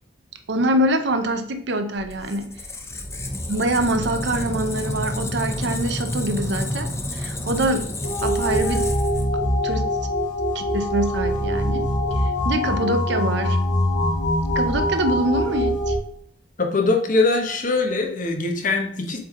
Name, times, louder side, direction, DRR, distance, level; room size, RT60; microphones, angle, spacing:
voice 1, 0.5-2.5 3.5-8.9 9.6-9.9 10.5-11.8 12.2-13.6 14.5-16.0, right 1 dB, 70° right, 7 dB, 0.7 m, -24 dB
Squeak, 2.0-9.7, left 1 dB, 15° left, 0.7 m, -30 dB
sound 1, 8.0-16.0, left 1 dB, 80° left, 2.7 m, -23 dB
voice 2, 16.6-19.2, left 3 dB, 45° left, 2 dB, 1.1 m, -22 dB
7.8 x 3.4 x 3.7 m, 0.67 s
head